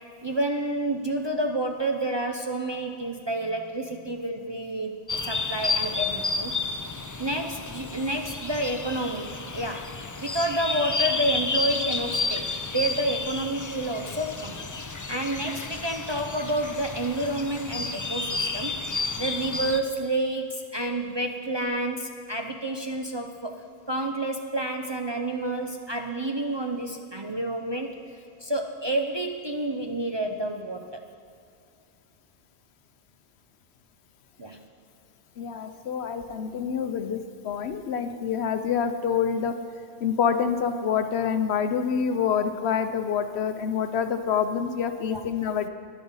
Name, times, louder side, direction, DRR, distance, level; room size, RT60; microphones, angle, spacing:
voice 1, 0.2-6.6 7.2-9.9 10.2-23.6 23.9-27.9 28.4-30.8 34.4-34.6 45.1-45.2, right 1 dB, 30° right, 3 dB, 0.5 m, -29 dB
sound 1, 5.1-19.8, left 3 dB, 30° left, 0.3 m, -31 dB
voice 2, 35.4-39.6 40.0-45.7, left 7 dB, 70° left, 9 dB, 0.9 m, -27 dB
12.0 x 10.5 x 5.5 m, 2.4 s
omnidirectional pair, 1.1 m